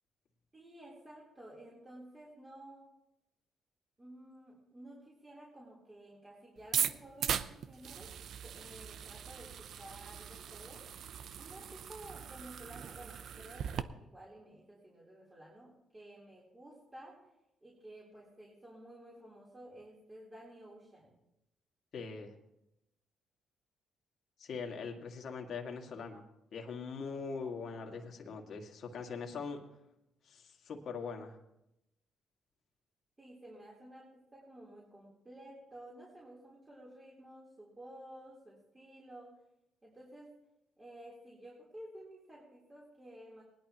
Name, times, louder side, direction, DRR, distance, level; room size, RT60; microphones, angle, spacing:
voice 1, 0.5-2.9 4.0-8.1 8.4-10.8 11.1-17.2 17.6-21.2 33.2-39.3 39.8-40.3 40.8-43.4, right 1 dB, 20° right, -5 dB, 3.6 m, -53 dB
sound 1, 6.6-13.8, right 8 dB, 65° right, 0.5 m, -39 dB
voice 2, 21.9-22.3 24.4-26.2 26.5-29.6 30.2-31.4, left 5 dB, 60° left, 2 dB, 2.0 m, -42 dB
19.5 x 11.0 x 3.0 m, 0.87 s
cardioid pair, 90°, 0 cm